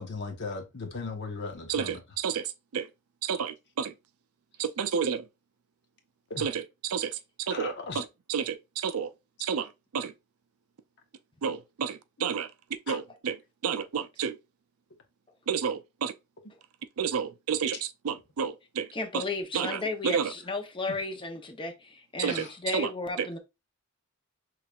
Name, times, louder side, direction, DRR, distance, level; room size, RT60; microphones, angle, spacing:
voice 1, 0.0-2.0 6.3-6.5 7.5-8.1 12.9-13.0 17.7-17.8 20.9-21.0 22.3-22.5, left 4 dB, 55° left, 1.1 m, -37 dB
voice 2, 1.7-2.9 3.2-3.9 4.6-5.2 6.4-7.2 7.5-8.0 8.3-9.1 9.4-9.7 9.9-10.1 11.4-12.5 12.9-13.4 13.6-14.4 15.5-16.1 17.0-17.8 18.0-18.9 19.1-19.2 19.5-20.3 22.2-22.5 22.7-22.9 23.2-23.3, right 7 dB, 75° right, 0.5 m, -30 dB
voice 3, 18.9-23.4, left 3 dB, 25° left, 0.8 m, -34 dB
5.7 x 3.2 x 2.4 m
head